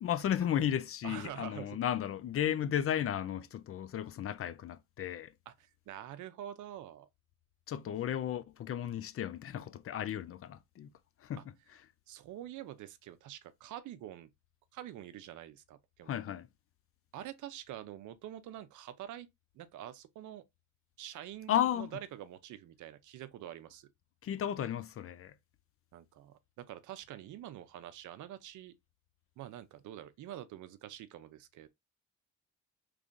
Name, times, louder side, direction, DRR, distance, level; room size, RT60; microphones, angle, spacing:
voice 1, 0.0-5.3 7.7-10.9 11.2-11.4 16.0-16.5 21.5-22.0 24.2-25.4, left 10 dB, 50° left, 0.5 m, -34 dB
voice 2, 1.0-1.8 5.5-7.1 12.1-14.3 14.7-16.1 17.1-19.3 19.5-20.4 21.0-23.9 25.9-28.7 29.4-31.7, right 12 dB, 75° right, 0.6 m, -46 dB
3.6 x 3.3 x 2.5 m
cardioid pair, 90°, 30 cm